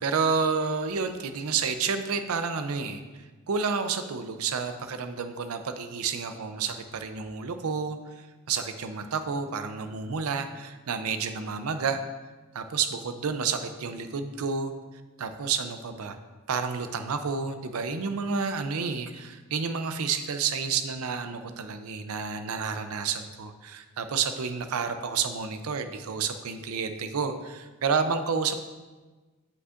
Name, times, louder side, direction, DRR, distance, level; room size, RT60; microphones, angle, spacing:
voice 1, 0.0-3.0 3.5-8.0 8.5-12.0 12.5-14.7 15.2-16.2 16.5-28.6, right 5 dB, 85° right, 9 dB, 0.5 m, -30 dB
8.1 x 5.4 x 2.5 m, 1.3 s
head